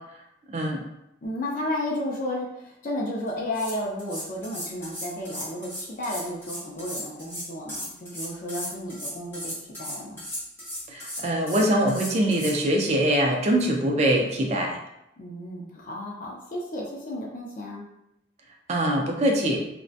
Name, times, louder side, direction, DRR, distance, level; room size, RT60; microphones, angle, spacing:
voice 1, 0.5-0.8 10.9-14.8 18.7-19.6, right 1 dB, 35° right, 0 dB, 0.4 m, -23 dB
voice 2, 1.2-10.2 15.2-17.9, left 1 dB, 45° left, -3 dB, 0.4 m, -33 dB
sound 1, 3.3-3.4 3.5-12.6, left 1 dB, 10° left, 0.8 m, -36 dB
2.6 x 2.1 x 2.4 m, 0.84 s
head